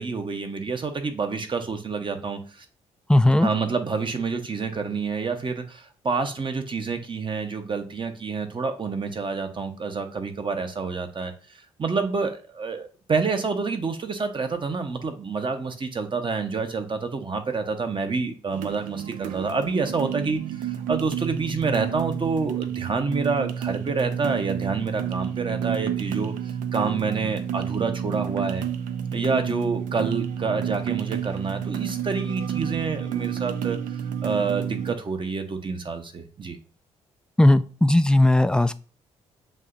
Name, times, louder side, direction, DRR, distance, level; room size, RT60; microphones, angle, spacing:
voice 1, 0.0-2.6 3.4-11.3 11.8-28.6 29.1-36.6, right 4 dB, 35° right, 6 dB, 0.9 m, -28 dB
voice 2, 3.1-3.5 37.4-38.7, left 1 dB, 5° left, 12 dB, 0.3 m, -17 dB
sound 1, 18.5-35.0, right 9 dB, 60° right, 0.4 m, -30 dB
7.4 x 2.8 x 2.5 m, 0.38 s
hypercardioid pair, 45°, 15 cm